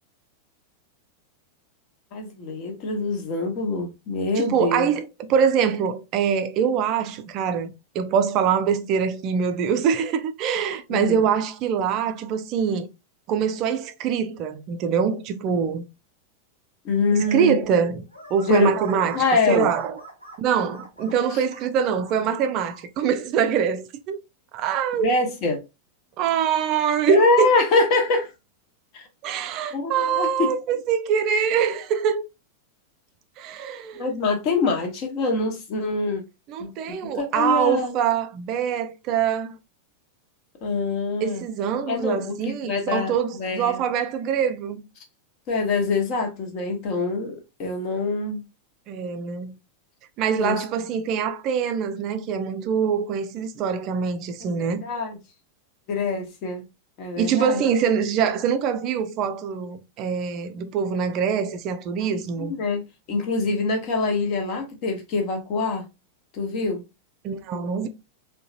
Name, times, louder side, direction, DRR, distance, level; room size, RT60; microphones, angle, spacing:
voice 1, 2.1-4.9 10.9-11.2 16.8-17.6 18.5-18.8 19.1-19.7 21.3-21.4 25.0-25.6 27.1-28.3 28.9-29.1 29.7-30.6 33.9-36.2 36.6-37.9 40.6-41.4 41.9-43.8 45.5-48.4 50.4-50.6 54.4-55.2 55.9-56.6 57.0-57.6 62.4-62.8 63.1-65.9 66.3-66.8, left 3 dB, 40° left, 1.0 m, -24 dB
voice 2, 4.4-12.9 13.3-15.8 17.3-18.0 18.3-20.0 20.4-24.2 24.5-25.1 26.2-27.5 29.2-32.2 33.4-34.0 36.5-39.6 41.2-44.8 48.9-49.5 50.2-54.9 57.2-62.5 67.2-67.9, right 7 dB, 40° right, 0.4 m, -24 dB
sound 1, 18.1-22.8, right 1 dB, 85° left, 1.0 m, -44 dB
3.7 x 2.3 x 2.7 m
figure-of-eight pair, 90°, 0 cm